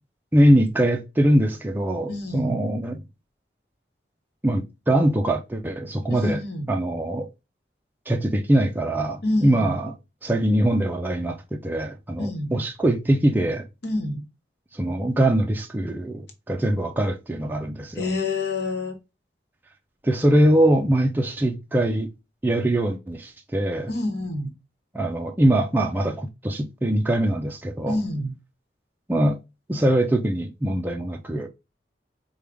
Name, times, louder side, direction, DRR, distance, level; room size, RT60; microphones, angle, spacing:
voice 1, 0.3-3.0 4.4-6.4 6.7-7.3 8.1-9.9 10.2-13.7 14.7-18.1 20.0-22.1 22.4-23.9 24.9-28.0 29.1-29.4 29.7-31.5, right 1 dB, 10° right, 0.4 m, -22 dB
voice 2, 2.1-2.6 6.1-6.7 9.2-9.8 12.2-12.6 13.8-14.2 17.9-19.0 23.9-24.5 27.9-28.3, left 2 dB, 65° left, 1.1 m, -27 dB
4.8 x 2.3 x 3.4 m
head